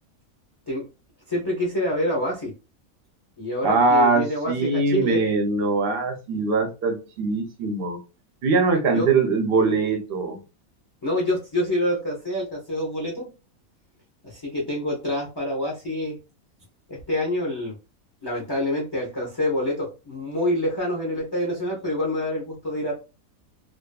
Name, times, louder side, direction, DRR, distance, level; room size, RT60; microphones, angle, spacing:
voice 1, 1.3-2.5 3.4-5.2 8.9-9.1 11.0-13.3 14.2-16.2 16.9-17.7 18.2-22.9, left 1 dB, 30° left, -3 dB, 0.4 m, -26 dB
voice 2, 3.6-8.0 8.4-10.4, right 3 dB, 55° right, 4 dB, 0.7 m, -22 dB
2.6 x 2.4 x 2.2 m, 0.30 s
omnidirectional pair, 1.5 m